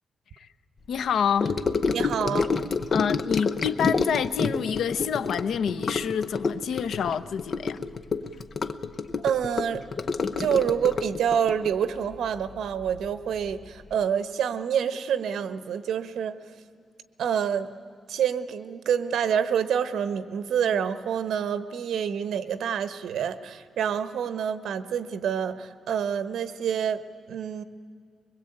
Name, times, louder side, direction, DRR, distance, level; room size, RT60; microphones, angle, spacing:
voice 1, 0.9-1.5 2.9-7.8, left 7 dB, 75° left, 0.8 m, -27 dB
Gurgling / Sink (filling or washing) / Trickle dribble, 1.4-13.1 13.3-13.7 13.9-14.0, left 4 dB, 35° left, 0.8 m, -28 dB
voice 2, 1.9-2.5 9.2-9.8 10.4-16.3 17.2-17.7 18.1-27.0 27.3-27.6, right 8 dB, 85° right, 1.1 m, -27 dB
24.0 x 21.5 x 8.8 m
wide cardioid pair, 165°, 0 cm